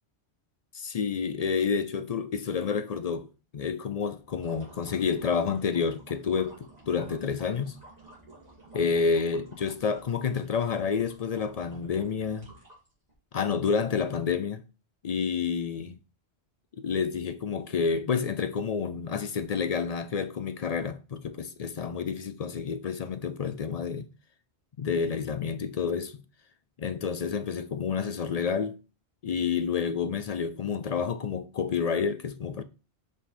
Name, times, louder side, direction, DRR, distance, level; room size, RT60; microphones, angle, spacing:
voice 1, 0.7-7.8 8.7-12.5 13.3-14.6 15.0-16.0 16.8-24.1 24.8-26.2 26.8-28.8 29.2-32.6, left 6 dB, 55° left, 0.4 m, -29 dB
sound 1, 4.2-13.1, right 2 dB, 35° right, 2.7 m, -52 dB
5.6 x 5.2 x 4.1 m
omnidirectional pair, 1.1 m